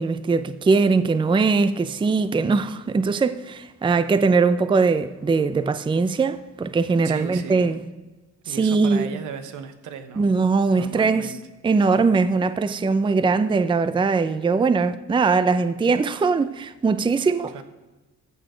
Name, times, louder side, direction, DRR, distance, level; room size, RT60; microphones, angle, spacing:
voice 1, 0.0-7.8 8.5-9.2 10.2-11.3 11.6-17.5, right 4 dB, 15° right, 0.5 m, -21 dB
voice 2, 7.0-7.7 8.4-10.3 10.7-11.4 17.5-17.6, right 7 dB, 80° right, 1.2 m, -36 dB
14.0 x 6.8 x 5.0 m
cardioid pair, 90°, 30 cm